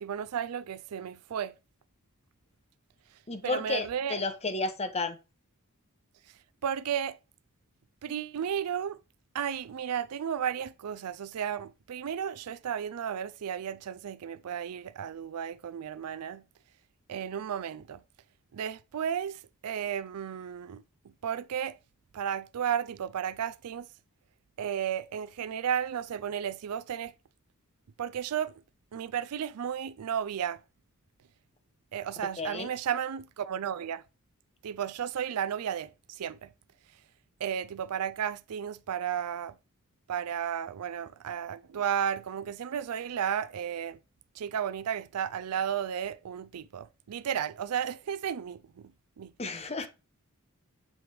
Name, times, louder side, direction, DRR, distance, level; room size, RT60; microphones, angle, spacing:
voice 1, 0.0-1.5 3.4-4.2 6.6-7.2 8.0-9.0 9.3-16.4 17.1-18.0 18.5-21.8 22.1-23.9 24.6-27.1 28.0-28.5 28.9-30.6 31.9-34.0 34.6-36.5 37.4-39.6 40.1-44.0 44.4-48.9 49.2-49.3, right 8 dB, 85° right, 0.4 m, -33 dB
voice 2, 3.3-5.2 32.4-32.7 49.4-49.9, left 3 dB, 30° left, 0.9 m, -32 dB
7.5 x 3.5 x 4.7 m
head